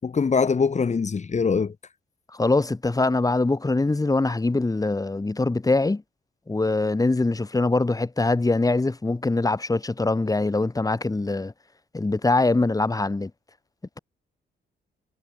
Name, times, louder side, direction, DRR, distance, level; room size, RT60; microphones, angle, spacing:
voice 1, 0.0-1.7, left 5 dB, 40° left, 5.6 m, -23 dB
voice 2, 2.3-6.0 6.5-11.5 11.9-13.3, left 2 dB, 20° left, 6.1 m, -23 dB
cardioid pair, 95°, 18 cm